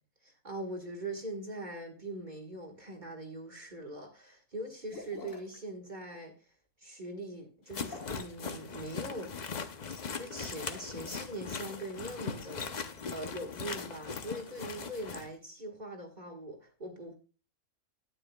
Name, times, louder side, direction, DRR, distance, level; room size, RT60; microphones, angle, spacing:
voice 1, 0.2-6.3 6.8-9.4 10.1-17.1, right 1 dB, 30° right, 1.7 m, -42 dB
sound 1, 4.9-5.6 7.8-8.4 10.6-11.2, left 3 dB, 60° left, 2.0 m, -47 dB
sound 2, 7.7-15.3, left 5 dB, 40° left, 0.6 m, -40 dB
12.0 x 9.8 x 2.3 m
omnidirectional pair, 1.5 m